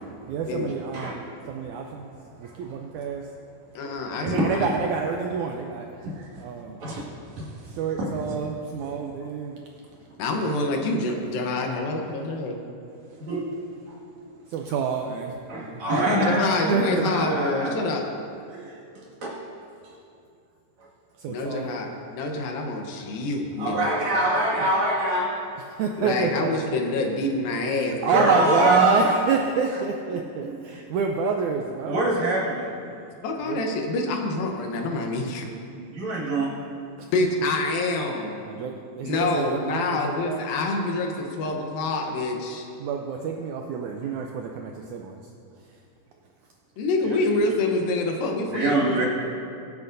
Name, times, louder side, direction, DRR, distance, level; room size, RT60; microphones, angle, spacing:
voice 1, 0.0-3.3 4.2-6.1 6.4-6.8 7.7-9.6 14.5-15.8 16.7-17.1 17.7-17.8 21.2-21.8 25.7-26.5 28.0-32.0 33.5-33.6 38.4-40.4 42.8-45.2, right 5 dB, 80° right, 2 dB, 1.7 m, -28 dB
voice 2, 3.8-4.5 9.2-9.3 10.2-12.6 16.3-18.0 21.3-23.9 26.0-28.3 33.2-35.5 37.1-38.4 39.0-42.7 46.8-49.0, left 2 dB, 85° left, 2 dB, 2.8 m, -26 dB
voice 3, 6.0-6.4 6.8-8.5 8.8-9.2 10.1-10.2 12.9-13.6 13.9-14.0 15.5-16.5 17.0-17.7 18.5-19.4 23.6-25.6 28.0-29.3 29.7-29.8 30.1-30.6 31.8-32.7 35.6-36.6 40.3-40.4 44.0-44.1 47.0-47.2 47.5-47.6 48.5-49.1, right 1 dB, 55° right, -5 dB, 3.1 m, -26 dB
22.0 x 8.2 x 2.6 m, 2.5 s
omnidirectional pair, 4.0 m